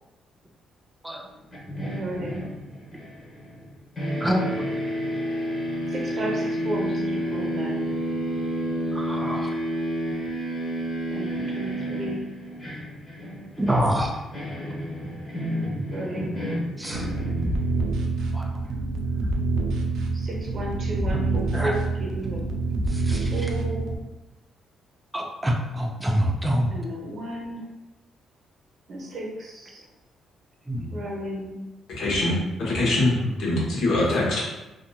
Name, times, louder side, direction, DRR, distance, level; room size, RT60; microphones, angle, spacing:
sound 1, 1.5-3.7 4.0-17.9, equal, 30° left, 1.1 m, -30 dB
voice 1, 1.9-2.5 5.9-7.8 11.1-12.3 15.9-16.5 20.1-22.4 23.3-23.9 26.7-27.7 28.9-29.8 30.9-31.6 34.0-34.4, right 1 dB, 50° right, -2 dB, 0.8 m, -33 dB
voice 2, 4.2-4.6 8.9-9.5 13.6-14.1 16.8-17.1 18.3-18.5 21.1-21.2 21.5-21.7 22.9-23.5 25.1-26.7 30.7-31.0, equal, 10° right, 0 dB, 0.4 m, -26 dB
sound 2, 16.9-24.0, right 3 dB, 80° right, 0.3 m, -26 dB
voice 3, 31.9-33.1 33.4-34.4, left 2 dB, 75° left, -5 dB, 0.9 m, -23 dB
2.7 x 2.5 x 2.2 m, 1.0 s
cardioid pair, 90°, 0 cm